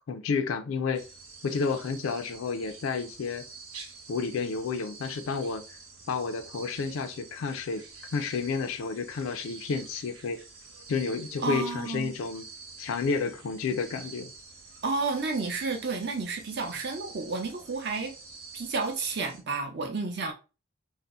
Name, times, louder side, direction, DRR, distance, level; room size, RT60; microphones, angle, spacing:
voice 1, 0.1-1.0 1.4-3.4 4.1-5.6 6.1-7.8 8.1-10.4 10.9-12.4 12.8-14.3, left 5 dB, 70° left, 0.4 m, -30 dB
sound 1, 0.9-19.4, right 4 dB, 75° right, 0.9 m, -48 dB
voice 2, 11.4-12.1 14.8-18.1 18.5-20.3, right 4 dB, 50° right, 0.6 m, -31 dB
2.6 x 2.0 x 3.5 m
head